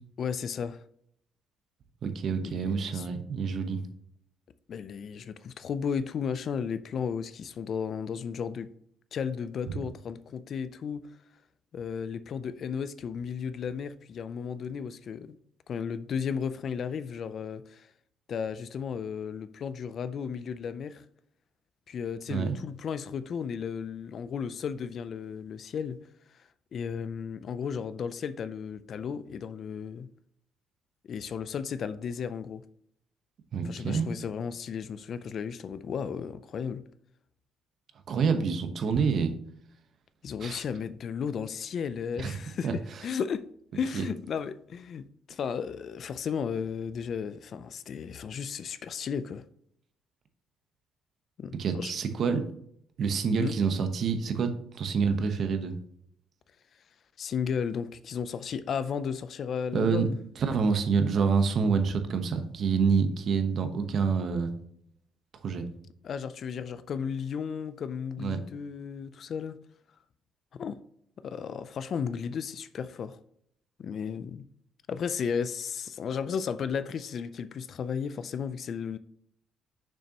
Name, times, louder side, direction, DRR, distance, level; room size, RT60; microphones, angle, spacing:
voice 1, 0.2-0.8 2.4-3.1 4.7-8.7 9.1-11.1 11.7-15.4 15.7-17.9 18.3-21.0 21.9-26.0 26.7-30.1 31.1-32.6 33.6-36.8 40.2-42.7 43.0-43.4 43.7-49.4 51.4-51.9 53.3-53.5 57.2-60.2 66.0-69.6 70.5-70.8 71.2-73.2 73.8-74.4 74.9-79.0, left 7 dB, 50° left, 0.4 m, -34 dB
voice 2, 2.0-3.8 9.7-9.8 22.3-22.6 33.5-34.1 38.1-39.3 40.4-40.6 42.2-42.4 42.6-42.7 43.9-44.1 51.5-52.4 53.0-55.7 59.7-60.1 60.4-64.5 65.4-65.7 68.2-68.4, right 5 dB, 50° right, 1.0 m, -27 dB
6.6 x 6.2 x 2.9 m
cardioid pair, 130°, 0 cm